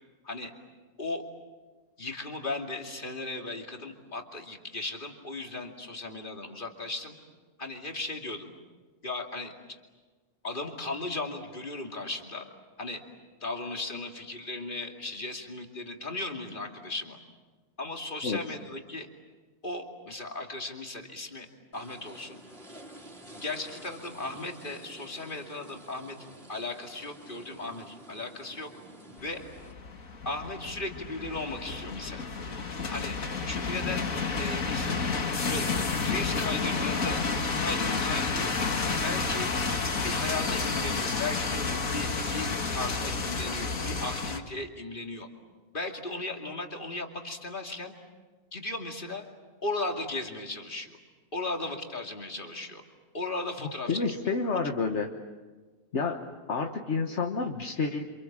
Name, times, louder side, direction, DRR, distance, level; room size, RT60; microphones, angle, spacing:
voice 1, 2.0-7.2 7.6-8.5 9.0-9.8 10.4-12.5 12.8-13.0 13.4-17.2 17.8-19.1 19.6-21.5 21.7-22.4 23.4-28.7 29.2-29.4 30.2-32.3 32.9-33.2 33.5-34.0 34.4-34.9 35.4-35.7 36.0-37.2 37.6-38.5 39.0-39.5 40.0-45.3 45.7-47.9 48.5-49.3 49.6-51.0 51.3-52.8 53.1-54.6, left 2 dB, 35° left, 2 dB, 2.8 m, -36 dB
sound 1, 21.7-29.7, right 1 dB, 45° right, 4.5 m, -50 dB
sound 2, 29.2-44.4, left 4 dB, 80° left, 2.3 m, -30 dB
voice 2, 53.9-55.1 55.9-56.2 56.5-58.0, left 4 dB, 55° left, 4 dB, 1.6 m, -29 dB
29.0 x 27.0 x 7.5 m, 1.3 s
omnidirectional pair, 1.4 m